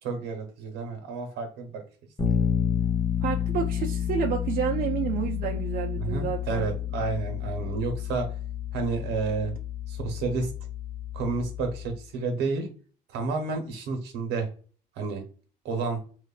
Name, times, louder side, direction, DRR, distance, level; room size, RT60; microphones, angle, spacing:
voice 1, 0.0-1.8 2.3-2.5 6.0-8.3 8.7-9.5 9.9-10.5 11.1-12.7 13.1-14.5 15.0-15.2 15.6-16.0, right 4 dB, 85° right, 0.9 m, -30 dB
Bass guitar, 2.2-12.0, left 8 dB, 20° left, 0.5 m, -30 dB
voice 2, 3.2-6.7, right 8 dB, 60° right, 0.5 m, -29 dB
3.1 x 2.2 x 2.3 m
cardioid pair, 110°, 17 cm